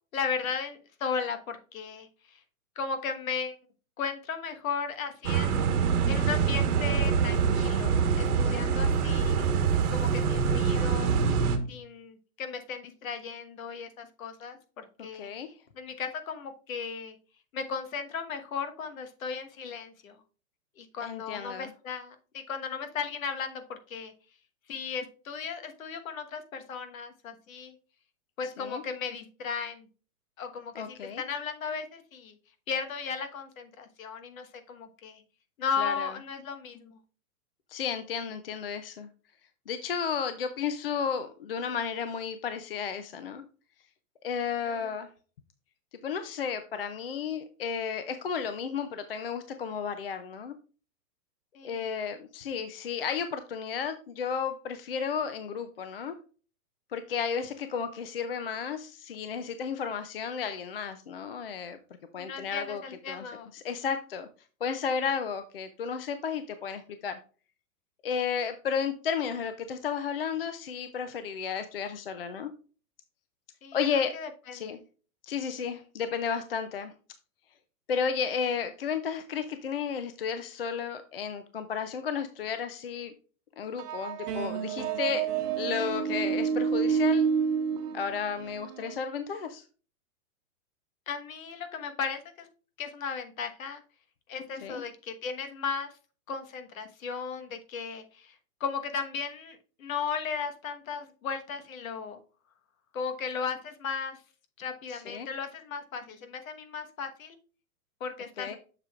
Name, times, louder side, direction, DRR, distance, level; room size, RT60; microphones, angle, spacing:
voice 1, 0.1-2.4 2.8-3.6 4.0-9.3 9.9-11.1 11.7-15.3 15.8-17.2 17.5-20.2 20.8-24.1 24.7-27.7 28.4-29.9 30.4-32.3 32.7-35.2 35.6-37.0 44.7-44.9 51.5-51.9 62.2-63.5 73.6-73.9 74.1-74.8 91.1-92.5 92.8-93.8 94.3-95.9 96.3-98.3 98.6-102.2 102.9-104.2 104.6-107.4 108.0-108.6, left 6 dB, 60° left, 8 dB, 1.3 m, -36 dB
sound 1, 5.2-11.6, right 6 dB, 70° right, 1.3 m, -25 dB
voice 2, 21.0-21.7 28.6-28.8 30.8-31.2 35.8-36.1 37.7-39.1 39.7-43.4 44.2-45.1 46.0-50.6 51.6-56.1 56.9-61.8 62.1-62.8 63.1-64.3 64.6-67.2 68.0-72.5 73.7-74.1 74.5-74.8 75.3-76.9 77.9-83.1 83.6-85.3 85.6-87.3 87.9-89.6 94.6-94.8 104.9-105.3 108.4-108.6, left 6 dB, 45° left, 10 dB, 0.4 m, -33 dB
sound 2, 83.8-89.0, right 6 dB, 90° right, 1.0 m, -29 dB
7.3 x 6.7 x 2.4 m, 0.37 s
hypercardioid pair, 175°, 45 cm